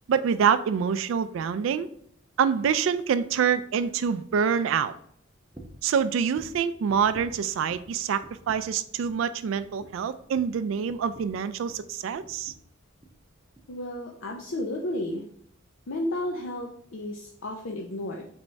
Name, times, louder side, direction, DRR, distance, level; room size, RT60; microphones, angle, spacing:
voice 1, 0.1-1.9 2.4-4.9 5.8-12.5, right 7 dB, 80° right, 12 dB, 0.3 m, -26 dB
sound 1, 5.5-5.9 6.3-7.9 8.2-8.8 9.0-9.3 9.5-11.9 12.2-12.7 13.0-13.2 13.5-13.7, right 1 dB, 10° right, 0.6 m, -49 dB
voice 2, 13.7-15.2 15.9-18.3, left 1 dB, 90° left, 0 dB, 0.6 m, -32 dB
4.0 x 3.5 x 3.2 m, 0.66 s
head